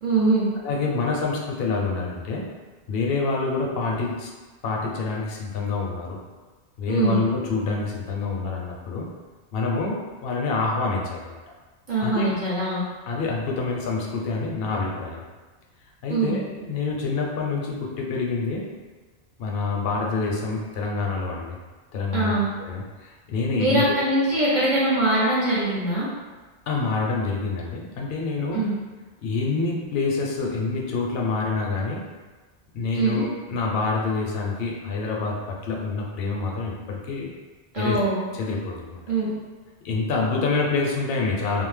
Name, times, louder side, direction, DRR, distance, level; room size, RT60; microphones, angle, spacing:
voice 1, 0.0-0.5 6.9-7.2 11.9-12.8 16.1-16.4 22.1-22.5 23.6-26.1 28.5-28.7 33.0-33.2 37.7-38.2 39.1-39.3, right 2 dB, 50° right, -9 dB, 0.7 m, -22 dB
voice 2, 0.6-2.5 2.9-4.3 4.6-6.2 6.8-9.1 9.5-11.4 12.0-12.3 13.1-15.2 16.0-18.8 19.4-21.6 21.9-24.0 26.7-28.8 29.2-32.1 32.7-37.3 37.8-38.0 38.3-39.0 39.8-41.7, left 4 dB, 65° left, -1 dB, 0.7 m, -27 dB
2.6 x 2.0 x 3.2 m, 1.3 s
omnidirectional pair, 1.2 m